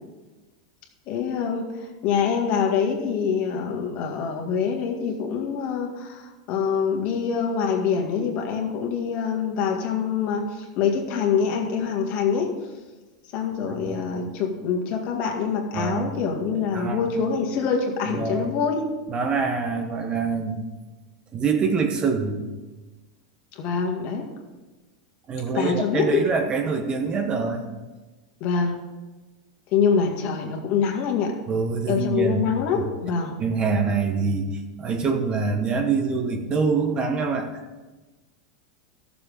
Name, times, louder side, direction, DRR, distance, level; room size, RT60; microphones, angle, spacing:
voice 1, 1.1-12.6 13.3-18.9 23.6-24.3 25.5-26.3 28.4-28.8 29.7-31.4 31.9-33.4, left 6 dB, 50° left, 2 dB, 2.0 m, -25 dB
voice 2, 13.7-14.0 15.7-16.1 16.7-17.1 18.1-18.5 19.1-20.6 21.3-22.4 25.3-27.6 31.5-32.5 32.7-32.8 33.4-37.5, right 5 dB, 30° right, 5 dB, 1.2 m, -25 dB
13.0 x 7.0 x 5.1 m, 1.2 s
hypercardioid pair, 120°, 3 cm